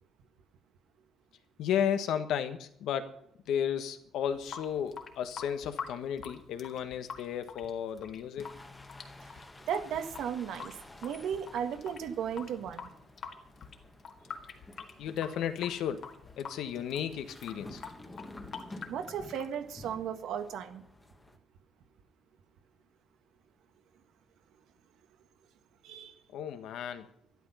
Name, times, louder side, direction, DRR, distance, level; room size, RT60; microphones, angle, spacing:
voice 1, 1.6-3.2 3.5-8.5 15.0-17.8 26.3-27.1, left 9 dB, 75° left, 9 dB, 1.4 m, -33 dB
Water tap faucet / Sink (filling or washing) / Drip, 4.2-20.2, left 6 dB, 40° left, 1.7 m, -46 dB
sound 1, 8.4-21.4, left 2 dB, 10° left, 1.2 m, -52 dB
voice 2, 9.7-10.8 11.0-12.9 18.9-20.8 25.8-26.1, right 8 dB, 70° right, 8 dB, 1.6 m, -35 dB
12.5 x 12.0 x 5.7 m, 0.69 s
cardioid pair, 175°, 0 cm